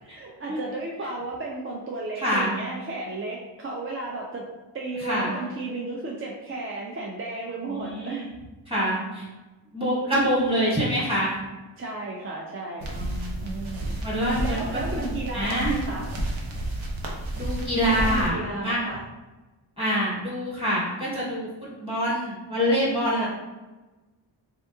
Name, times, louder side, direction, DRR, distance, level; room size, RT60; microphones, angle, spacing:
voice 1, 0.0-4.5 4.7-8.3 11.8-12.9 13.4-16.1 17.8-19.0 23.1-23.3, right 2 dB, 30° right, -2 dB, 0.4 m, -34 dB
voice 2, 2.2-2.6 5.1-5.3 7.7-8.2 8.7-9.2 9.7-11.3 12.9-13.5 14.0-15.7 17.4-18.8 19.8-21.5 21.8-23.3, equal, 10° right, -7 dB, 1.3 m, -26 dB
sound 1, 12.8-18.3, right 1 dB, 75° right, 0.7 m, -31 dB
3.5 x 2.8 x 2.3 m, 1.1 s
wide cardioid pair, 125°, 47 cm